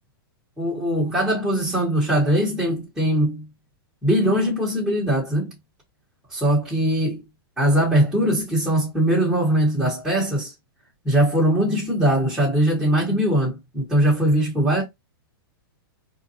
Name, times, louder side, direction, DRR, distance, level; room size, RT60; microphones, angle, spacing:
voice 1, 0.6-3.4 4.0-5.5 6.3-7.2 7.6-10.5 11.0-14.8, right 1 dB, 5° right, 1.7 m, -21 dB
4.3 x 2.9 x 2.8 m
hypercardioid pair, 160°, 13 cm